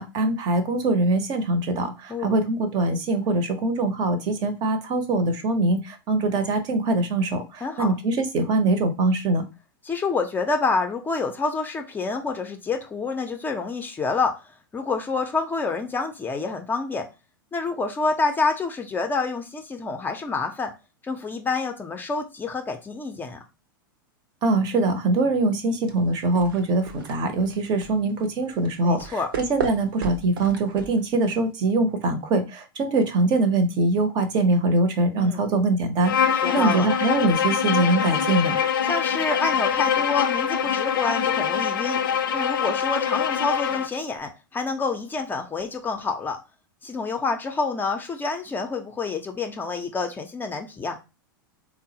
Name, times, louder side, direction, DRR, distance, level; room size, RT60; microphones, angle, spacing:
voice 1, 0.0-9.5 24.4-38.6, right 2 dB, 40° right, 8 dB, 0.6 m, -23 dB
voice 2, 7.6-7.9 9.8-14.4 14.7-17.1 17.5-20.7 21.0-23.4 28.8-29.3 35.2-35.4 36.3-36.9 38.8-42.0 42.3-46.4 46.8-51.0, left 4 dB, 15° left, 4 dB, 0.4 m, -27 dB
sound 1, 25.9-31.5, right 6 dB, 75° right, 0.7 m, -36 dB
Bowed string instrument, 36.0-43.9, left 8 dB, 75° left, 0.4 m, -24 dB
3.6 x 2.0 x 2.7 m, 0.29 s
hypercardioid pair, 100°, 12 cm